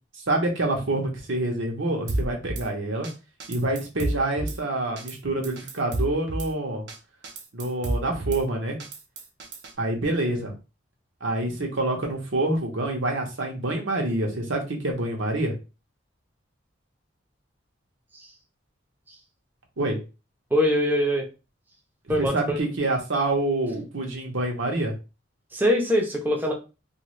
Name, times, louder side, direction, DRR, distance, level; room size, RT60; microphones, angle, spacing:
voice 1, 0.3-3.1 3.5-6.8 7.5-8.8 9.8-10.5 11.2-15.5 19.8-20.0 22.1-24.9, right 2 dB, 85° right, 1 dB, 0.9 m, -27 dB
Drum kit / Snare drum, 2.1-2.7 3.0-3.1 3.4-4.6 5.0-5.2 5.4-6.5 6.9-7.0 7.2-8.4 8.8-9.7, right 1 dB, 60° right, 0.5 m, -30 dB
voice 2, 20.5-21.3 22.1-22.6 25.5-26.5, equal, 10° right, 1 dB, 0.4 m, -23 dB
2.5 x 2.5 x 3.1 m, 0.30 s
head